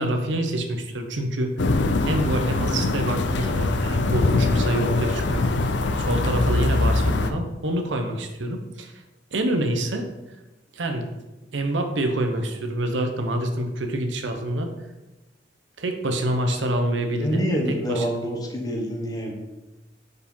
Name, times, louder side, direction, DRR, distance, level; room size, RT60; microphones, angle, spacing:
voice 1, 0.0-1.7 2.0-5.5 6.0-9.0 9.3-10.1 10.7-11.1 11.5-14.7 15.8-17.4 17.7-18.1, right 1 dB, 85° right, 5 dB, 0.8 m, -26 dB
sound 1, 1.6-7.3, left 2 dB, 70° left, 0.5 m, -23 dB
voice 2, 17.2-19.3, equal, 20° left, -1 dB, 1.2 m, -26 dB
4.9 x 4.6 x 5.4 m, 1.0 s
head